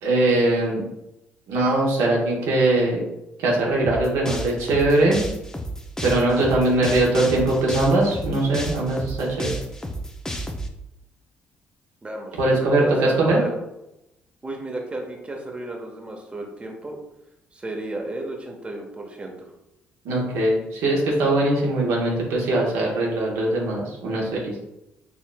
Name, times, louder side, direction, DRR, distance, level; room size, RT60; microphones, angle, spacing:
voice 1, 0.0-0.8 1.5-3.0 3.4-5.2 6.0-9.6 12.4-13.4 20.0-24.6, right 2 dB, 75° right, -3 dB, 1.0 m, -21 dB
sound 1, 3.8-10.7, equal, 10° left, 0.6 m, -31 dB
voice 2, 12.0-13.5 14.4-17.0 17.5-19.5 22.5-22.7, right 2 dB, 25° right, 1 dB, 1.0 m, -33 dB
4.7 x 3.0 x 2.2 m, 0.88 s
hypercardioid pair, 55°, 5 cm